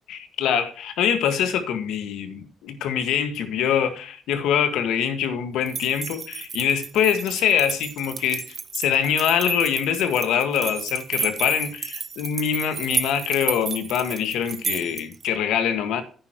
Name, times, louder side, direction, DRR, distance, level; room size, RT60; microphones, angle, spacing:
voice 1, 0.1-8.4 8.7-16.0, left 8 dB, 90° left, 9 dB, 1.7 m, -24 dB
sound 1, 5.7-15.2, right 6 dB, 45° right, 1.0 m, -32 dB
10.5 x 9.6 x 3.0 m, 0.40 s
cardioid pair, 90°, 0 cm